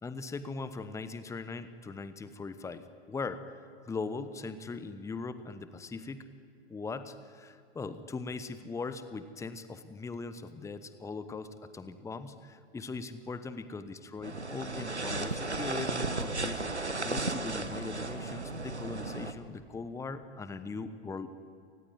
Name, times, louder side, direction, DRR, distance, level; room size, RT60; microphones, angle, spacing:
voice 1, 0.0-6.3 6.7-21.4, left 4 dB, 10° left, 12 dB, 1.1 m, -40 dB
sound 1, 14.2-19.3, right 2 dB, 90° right, 1.5 m, -34 dB
29.5 x 19.0 x 9.5 m, 2.5 s
figure-of-eight pair, 95°, 33 cm